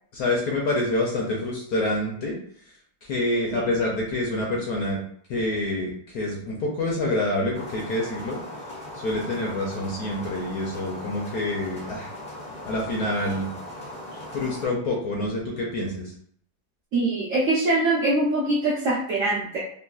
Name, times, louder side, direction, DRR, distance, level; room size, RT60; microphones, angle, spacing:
voice 1, 0.1-2.3 3.0-5.0 5.3-8.4 8.9-12.1 12.7-13.5 14.3-16.1, left 1 dB, 70° left, -2 dB, 0.9 m, -27 dB
sound 1, 7.5-14.7, left 1 dB, 10° left, 0.4 m, -39 dB
voice 2, 16.9-19.6, right 2 dB, 65° right, -6 dB, 0.8 m, -23 dB
3.8 x 2.2 x 2.3 m, 0.64 s
omnidirectional pair, 2.0 m